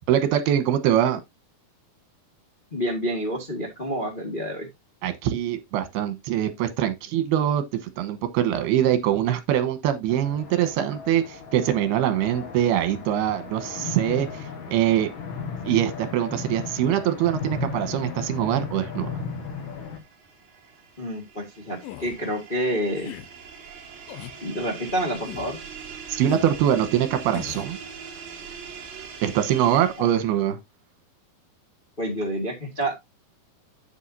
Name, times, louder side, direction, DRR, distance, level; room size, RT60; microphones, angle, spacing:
voice 1, 0.1-1.2 5.0-7.6 8.0-14.3 14.7-15.1 15.7-19.1 26.1-27.8 29.2-30.6, right 11 dB, 85° right, 3.2 m, -23 dB
voice 2, 2.7-4.7 21.0-23.1 24.4-25.6 30.0-30.1 32.0-32.9, equal, 40° left, 0.7 m, -28 dB
sound 1, 10.1-20.0, left 5 dB, 60° left, 1.3 m, -35 dB
sound 2, 18.7-30.4, right 6 dB, 50° right, 3.6 m, -42 dB
sound 3, 21.8-22.2 23.0-23.3 24.1-24.4 25.2-25.6 26.3-26.5 27.3-27.7, left 14 dB, 75° left, 2.4 m, -38 dB
9.2 x 8.2 x 2.7 m
omnidirectional pair, 4.5 m